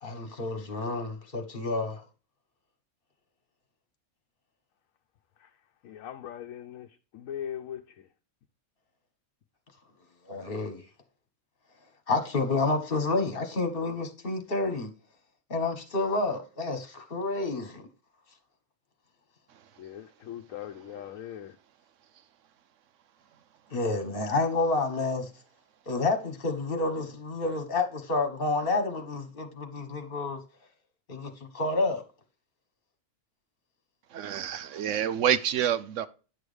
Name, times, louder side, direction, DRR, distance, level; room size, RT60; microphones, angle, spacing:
voice 1, 0.0-2.0 10.3-10.8 12.1-14.9 15.5-17.8 23.7-25.3 25.9-30.4 31.1-32.0, left 3 dB, 45° left, 1.7 m, -29 dB
voice 2, 5.8-8.1 19.8-21.6, left 10 dB, 80° left, 1.0 m, -40 dB
voice 3, 34.1-36.1, right 9 dB, 70° right, 1.0 m, -27 dB
9.8 x 6.2 x 3.4 m
omnidirectional pair, 1.4 m